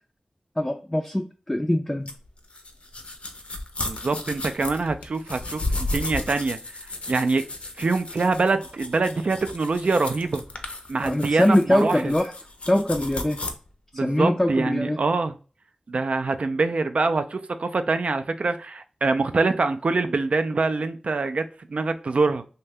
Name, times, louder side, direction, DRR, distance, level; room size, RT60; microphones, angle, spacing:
voice 1, 0.6-2.1 11.0-12.3 12.7-13.4 13.9-15.0, left 1 dB, 15° left, 0.3 m, -23 dB
sound 1, 2.1-13.5, left 2 dB, 65° left, 0.5 m, -34 dB
voice 2, 3.9-6.6 7.1-7.5 7.8-10.4 10.9-12.1 13.9-15.4 15.9-22.4, right 3 dB, 65° right, 0.3 m, -24 dB
2.7 x 2.1 x 3.3 m
wide cardioid pair, 50°, 2 cm